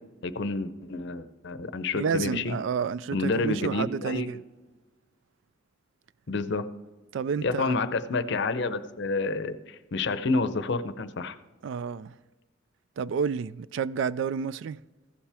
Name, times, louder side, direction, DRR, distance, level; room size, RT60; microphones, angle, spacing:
voice 1, 0.2-2.6 3.1-4.3 6.3-6.7 7.4-11.4, left 3 dB, 60° left, 0.6 m, -29 dB
voice 2, 1.9-4.4 7.1-7.7 11.6-12.1 13.0-14.8, right 6 dB, 65° right, 0.3 m, -30 dB
15.0 x 7.3 x 3.4 m
head